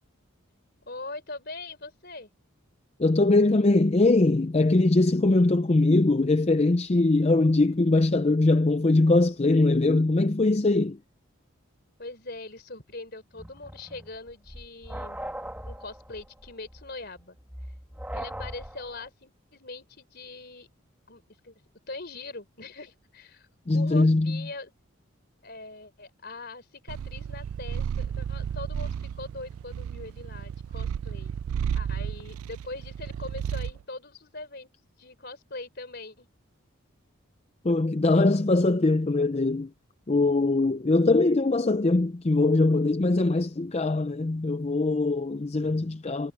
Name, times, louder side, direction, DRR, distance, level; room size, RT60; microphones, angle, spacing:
voice 1, 0.9-2.3 12.0-15.2 15.6-17.4 18.1-20.7 21.1-21.6 21.9-23.5 23.7-24.7 25.4-31.4 31.7-34.7 35.0-36.3, left 3 dB, 50° left, 4.3 m, -41 dB
voice 2, 3.0-11.0 23.7-24.4 37.6-39.7 40.1-46.3, left 2 dB, 30° left, 0.5 m, -22 dB
sound 1, 13.3-19.1, right 1 dB, 5° right, 2.5 m, -40 dB
Purr, 26.9-33.8, right 8 dB, 85° right, 0.3 m, -33 dB
head